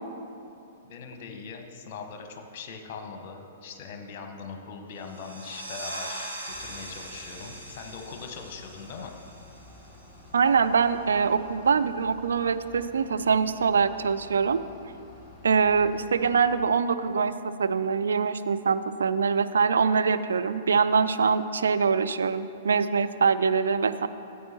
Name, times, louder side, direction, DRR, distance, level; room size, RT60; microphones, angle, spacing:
voice 1, 0.8-9.1, left 5 dB, 40° left, 4 dB, 1.0 m, -41 dB
sound 1, 5.0-10.3, right 1 dB, 85° right, 1.6 m, -41 dB
Bus / Idling, 6.5-16.5, left 2 dB, 15° left, 2.2 m, -51 dB
voice 2, 10.3-14.6 15.4-17.3 17.6-24.1, right 5 dB, 65° right, 11 dB, 0.3 m, -24 dB
14.0 x 8.4 x 2.9 m, 2.7 s
figure-of-eight pair, 110°, 0 cm